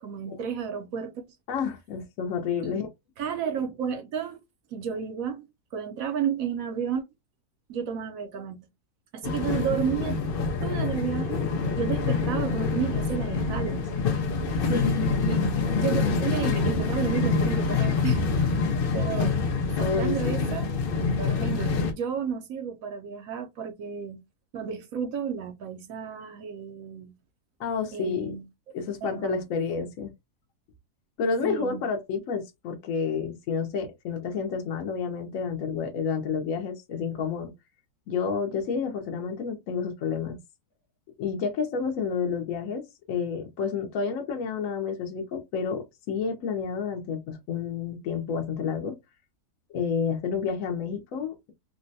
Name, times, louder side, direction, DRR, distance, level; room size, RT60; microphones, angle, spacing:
voice 1, 0.0-1.2 2.6-2.8 3.2-4.4 4.7-5.4 5.7-7.0 7.7-8.7 9.1-10.2 10.6-11.5 11.7-13.9 14.8-15.5 15.8-19.4 19.8-20.7 21.2-24.2 24.5-27.1 27.9-28.4 29.0-29.5 31.4-31.8, right 7 dB, 70° right, 0.9 m, -32 dB
voice 2, 1.5-2.9 14.7-15.1 19.8-20.5 27.6-28.4 28.7-30.1 31.2-37.5 38.1-40.4 41.2-42.8 43.1-49.0 49.7-51.5, left 6 dB, 65° left, 0.9 m, -30 dB
sound 1, 9.2-21.9, left 4 dB, 85° left, 0.4 m, -26 dB
3.7 x 2.1 x 2.6 m
omnidirectional pair, 1.7 m